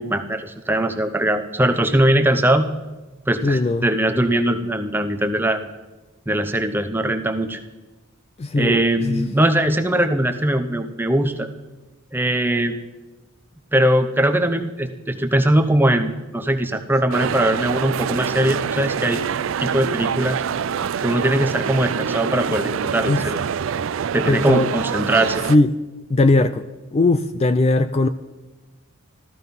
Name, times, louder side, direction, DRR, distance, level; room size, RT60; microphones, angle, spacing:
voice 1, 0.0-2.7 3.3-5.6 6.3-7.6 8.5-11.5 12.1-12.8 13.7-19.2 19.6-20.4 21.0-23.4 24.1-25.4, right 1 dB, 10° right, 7 dB, 0.8 m, -20 dB
voice 2, 3.4-3.9 8.4-9.3 23.0-23.3 24.3-24.7 25.5-25.7 26.1-26.6 26.9-28.1, left 2 dB, 30° left, 12 dB, 0.3 m, -19 dB
sound 1, 17.1-25.6, right 7 dB, 65° right, 0.4 m, -25 dB
14.0 x 14.0 x 5.4 m, 1.1 s
head